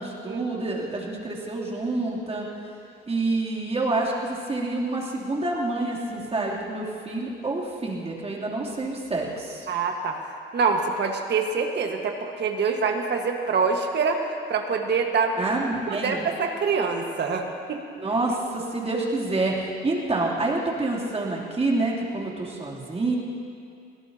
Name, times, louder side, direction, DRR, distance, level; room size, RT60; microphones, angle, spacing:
voice 1, 0.0-2.5 3.1-9.7 15.4-16.3 18.0-23.2, right 2 dB, 30° right, -4 dB, 3.1 m, -27 dB
voice 2, 9.7-10.2 10.5-14.2 14.5-15.4 15.9-17.8, right 5 dB, 60° right, 3 dB, 1.6 m, -25 dB
23.0 x 17.0 x 2.9 m, 2.5 s
cardioid pair, 90°, 20 cm